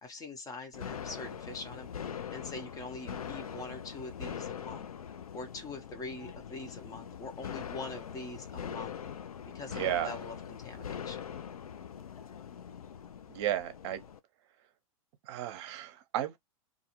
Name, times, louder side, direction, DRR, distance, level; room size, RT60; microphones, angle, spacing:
voice 1, 0.0-4.9 5.3-9.0 9.5-11.2, left 3 dB, 20° left, 0.7 m, -44 dB
sound 1, 0.7-14.2, left 8 dB, 85° left, 0.4 m, -42 dB
voice 2, 9.7-10.1 13.3-14.0 15.2-16.4, right 12 dB, 50° right, 0.7 m, -33 dB
2.4 x 2.3 x 2.9 m
hypercardioid pair, 105°, 18 cm